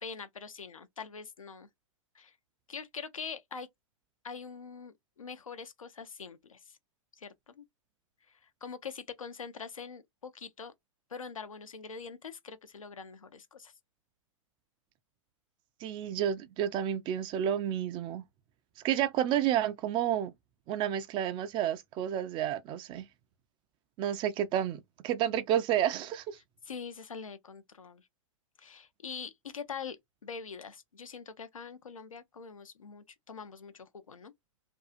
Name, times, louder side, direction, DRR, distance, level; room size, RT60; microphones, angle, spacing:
voice 1, 0.0-1.7 2.1-2.4 2.7-3.7 4.2-6.8 7.1-7.6 8.3-10.7 11.1-13.7 26.6-28.1 28.6-30.0 30.2-34.3, left 6 dB, 90° left, 0.5 m, -44 dB
voice 2, 15.8-18.2 18.8-20.3 20.7-23.1 24.0-26.4, right 10 dB, 30° right, 0.4 m, -30 dB
2.6 x 2.3 x 2.4 m
hypercardioid pair, 105°, 17 cm